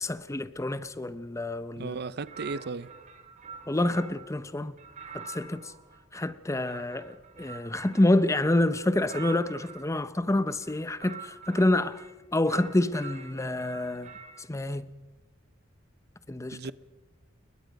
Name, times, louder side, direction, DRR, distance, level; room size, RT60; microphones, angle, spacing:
voice 1, 0.0-2.0 3.7-4.7 5.1-5.7 6.1-12.0 12.3-14.1 14.5-14.9 16.3-16.6, left 1 dB, 15° left, 0.7 m, -27 dB
voice 2, 1.7-2.9 16.5-16.7, right 4 dB, 55° right, 0.6 m, -35 dB
sound 1, 2.2-4.3 4.8-9.9 10.5-12.1 12.5-14.4, right 6 dB, 40° right, 2.4 m, -46 dB
29.5 x 21.0 x 5.2 m
head